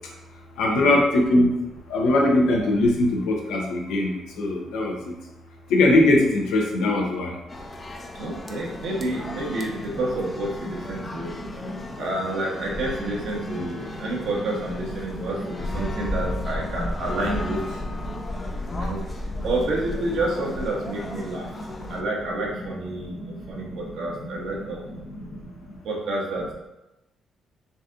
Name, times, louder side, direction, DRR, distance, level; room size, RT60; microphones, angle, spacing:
voice 1, 0.6-1.5 1.9-5.1 5.7-7.3 10.6-10.7 11.0-11.3 11.6-11.9 13.5-13.7 15.1-15.5 15.9-16.2 19.3-19.4 23.3-23.4 23.7-23.8, left 2 dB, 90° left, 0 dB, 0.9 m, -22 dB
sound 1, 7.5-22.0, left 1 dB, 25° left, 0.5 m, -35 dB
voice 2, 8.1-11.4 12.0-17.8 18.6-19.0 19.4-25.0 25.8-26.4, right 2 dB, 75° right, -3 dB, 1.2 m, -29 dB
4.1 x 2.8 x 3.7 m, 0.98 s
cardioid pair, 90°, 0 cm